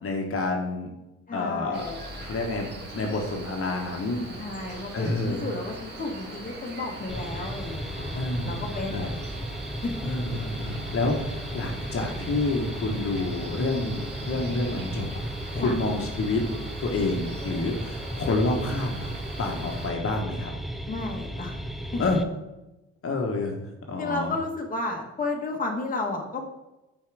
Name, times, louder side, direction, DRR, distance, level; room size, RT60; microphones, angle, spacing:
voice 1, 0.0-0.9 1.3-1.9 2.2-4.2 4.9-5.4 8.1-8.6 8.9-9.1 10.0-15.1 15.5-16.4 16.8-19.1 19.4-20.5 22.0-22.2 23.0-24.3, left 2 dB, 50° left, 2 dB, 1.2 m, -28 dB
voice 2, 1.3-2.0 4.4-9.0 9.8-9.9 15.6-15.8 20.8-21.6 21.9-22.0 24.0-26.4, left 2 dB, 30° left, 1 dB, 1.2 m, -32 dB
Cricket, 1.7-19.9, right 2 dB, 35° right, 2.1 m, -41 dB
sound 1, 7.1-22.2, equal, ahead, 0.5 m, -35 dB
5.6 x 4.7 x 4.7 m, 0.99 s
cardioid pair, 90°, 30 cm